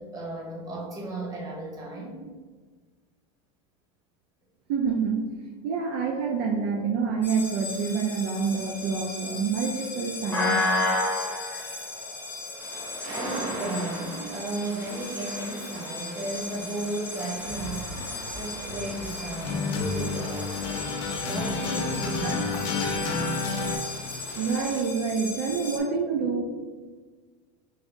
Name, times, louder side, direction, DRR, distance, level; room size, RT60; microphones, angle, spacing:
voice 1, 0.0-2.3 13.1-17.9 18.3-20.9 21.2-22.7, right 2 dB, 25° right, -2 dB, 0.8 m, -34 dB
voice 2, 4.7-5.3 5.6-10.6 24.4-26.4, right 5 dB, 60° right, 2 dB, 0.4 m, -27 dB
sound 1, 7.2-25.8, left 2 dB, 15° left, 0.7 m, -34 dB
sound 2, 12.6-24.8, right 2 dB, 75° right, 1.0 m, -41 dB
sound 3, 17.4-23.8, left 4 dB, 70° left, 0.7 m, -31 dB
3.3 x 2.5 x 3.7 m, 1.4 s
supercardioid pair, 150°, 15 cm